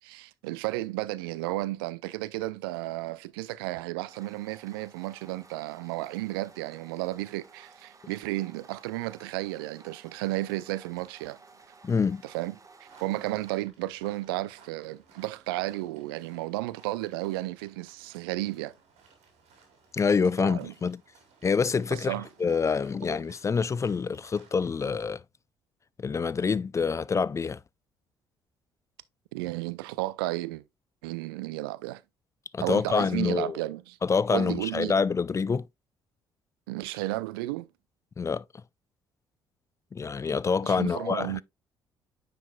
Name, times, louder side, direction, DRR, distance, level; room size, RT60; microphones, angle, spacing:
voice 1, 0.0-11.4 12.2-12.5 12.8-18.7 20.4-20.7 21.9-22.3 29.3-30.6 31.0-32.0 32.6-34.0 34.3-34.9 36.7-37.7 40.6-41.4, right 18 dB, 75° right, 0.4 m, -33 dB
sound 1, 4.1-13.5, right 4 dB, 25° right, 1.4 m, -55 dB
voice 2, 11.8-12.2 19.9-21.0 21.4-22.1 22.4-25.2 26.0-27.6 32.5-33.6 34.0-35.7 38.2-38.4 39.9-41.4, left 5 dB, 25° left, 0.3 m, -26 dB
sound 2, 12.8-24.9, right 5 dB, 60° right, 2.5 m, -59 dB
9.5 x 4.7 x 2.2 m
hypercardioid pair, 50°, 12 cm